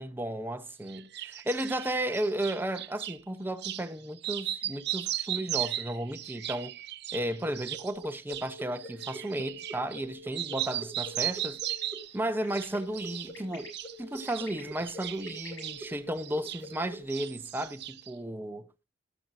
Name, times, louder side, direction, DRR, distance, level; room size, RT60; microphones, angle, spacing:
voice 1, 0.0-6.7 7.1-11.6 12.1-13.7 14.0-18.7, right 1 dB, 10° right, 0.8 m, -34 dB
sound 1, 0.9-3.2 3.6-3.9 4.2-10.1 10.3-12.2 12.5-13.3 13.6-16.8 17.1-18.1, right 13 dB, 60° right, 0.6 m, -37 dB
sound 2, 7.7-17.0, equal, 5° left, 2.3 m, -45 dB
sound 3, 11.0-17.9, left 2 dB, 85° left, 7.1 m, -55 dB
13.5 x 10.5 x 2.6 m
head